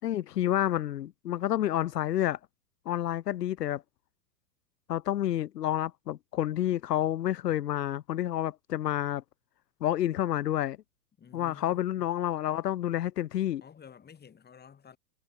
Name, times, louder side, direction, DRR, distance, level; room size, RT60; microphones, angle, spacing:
voice 1, 0.0-2.4 2.9-3.8 4.9-9.2 9.8-10.8 11.3-13.6, left 12 dB, 75° left, 0.8 m, -29 dB
voice 2, 11.2-11.8 13.6-15.0, left 7 dB, 20° left, 7.2 m, -51 dB
hypercardioid pair, 105°, 48 cm